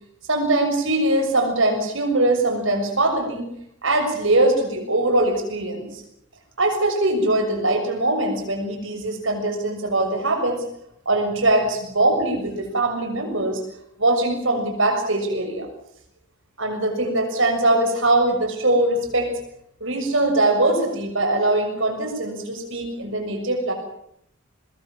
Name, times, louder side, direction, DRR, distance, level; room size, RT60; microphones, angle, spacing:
voice 1, 0.3-3.5 3.8-6.0 6.6-10.6 11.0-13.6 14.0-15.7 16.6-19.3 19.8-23.7, right 2 dB, 60° right, 4 dB, 6.6 m, -21 dB
23.0 x 21.0 x 7.4 m, 0.74 s
head